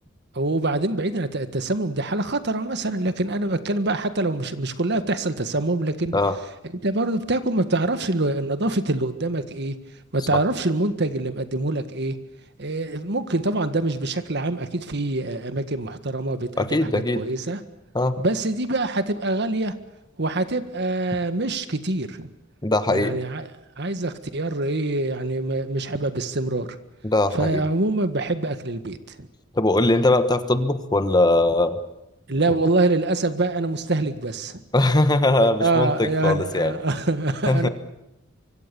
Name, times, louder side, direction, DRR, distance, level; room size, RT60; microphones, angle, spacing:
voice 1, 0.3-6.1 6.8-9.8 10.1-12.2 12.6-17.6 18.2-19.8 20.2-22.3 22.9-23.5 23.8-26.7 27.3-29.3 32.3-34.6 35.3-37.7, right 2 dB, 60° right, 1.7 m, -25 dB
voice 2, 16.6-17.2 17.9-18.2 22.6-23.2 27.0-27.6 29.5-31.8 32.5-32.6 34.7-36.7 37.5-37.7, left 2 dB, 20° left, 1.3 m, -20 dB
24.5 x 24.5 x 7.0 m
head